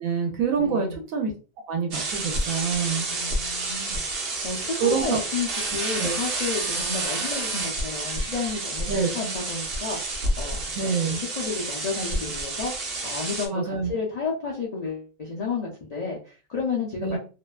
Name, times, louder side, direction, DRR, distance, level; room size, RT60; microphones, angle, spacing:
voice 1, 0.0-1.3 1.7-3.1 4.8-5.2 6.0-6.1 8.9-9.1 10.8-11.2 13.5-13.9 17.0-17.2, right 6 dB, 80° right, 2 dB, 1.0 m, -26 dB
voice 2, 0.6-1.0 3.1-12.7 13.0-17.2, left 4 dB, 60° left, -3 dB, 0.4 m, -32 dB
sound 1, 1.9-13.5, right 2 dB, 55° right, 0.7 m, -29 dB
2.6 x 2.2 x 2.3 m, 0.35 s
omnidirectional pair, 1.4 m